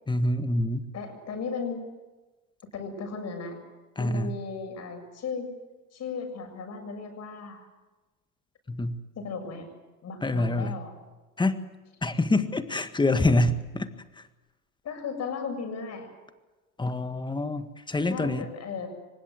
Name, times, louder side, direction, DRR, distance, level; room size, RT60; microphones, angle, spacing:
voice 1, 0.1-0.9 4.0-4.4 8.7-9.0 10.2-10.8 11.4-11.6 12.0-13.9 14.2-14.3 16.8-18.5, left 2 dB, 10° left, 10 dB, 1.7 m, -26 dB
voice 2, 0.9-1.8 2.7-3.6 4.0-5.5 5.9-7.6 9.2-9.7 10.0-10.9 14.8-16.1 18.1-18.9, left 5 dB, 35° left, 4 dB, 7.3 m, -35 dB
24.0 x 20.5 x 7.9 m, 1.2 s
hypercardioid pair, 85°, 46 cm